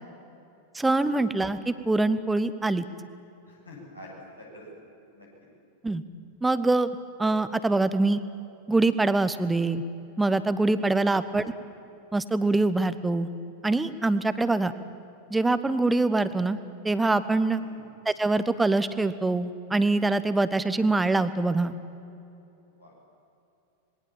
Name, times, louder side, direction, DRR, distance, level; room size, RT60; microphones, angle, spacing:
voice 1, 0.7-2.8 5.8-6.0 6.4-6.9 7.2-8.2 8.7-9.8 10.2-11.5 12.1-13.3 13.6-14.7 15.3-16.6 16.8-17.6 18.0-21.7, right 2 dB, 10° right, 13 dB, 1.1 m, -24 dB
voice 2, 3.4-4.1 4.4-4.7 5.1-5.3 10.9-11.1 14.6-14.7 17.5-17.8 22.8-23.0, left 1 dB, 85° left, -4 dB, 7.9 m, -47 dB
26.0 x 21.5 x 7.4 m, 2.8 s
figure-of-eight pair, 90°, 0 cm